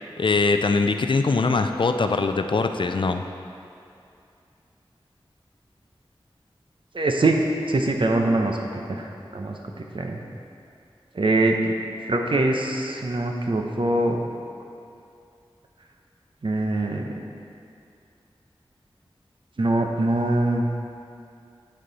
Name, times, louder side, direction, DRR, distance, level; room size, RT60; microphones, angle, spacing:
voice 1, 0.2-3.2, left 3 dB, 60° left, 7 dB, 0.4 m, -22 dB
voice 2, 6.9-7.4 7.7-8.6 8.9-9.1 9.3-9.6 9.9-10.2 11.1-11.7 12.1-14.2 16.4-17.1 19.6-20.7, right 2 dB, 60° right, 2 dB, 0.7 m, -23 dB
7.6 x 6.5 x 4.0 m, 2.5 s
wide cardioid pair, 55°, 10 cm